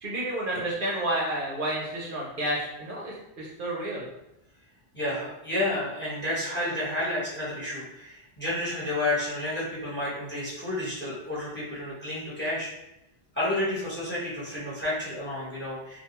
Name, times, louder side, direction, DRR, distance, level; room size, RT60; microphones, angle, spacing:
voice 1, 0.0-4.1, right 1 dB, 65° right, -4 dB, 0.7 m, -30 dB
voice 2, 4.9-12.7 13.3-16.0, left 1 dB, 10° left, -9 dB, 0.8 m, -30 dB
2.3 x 2.2 x 2.8 m, 0.85 s
omnidirectional pair, 1.0 m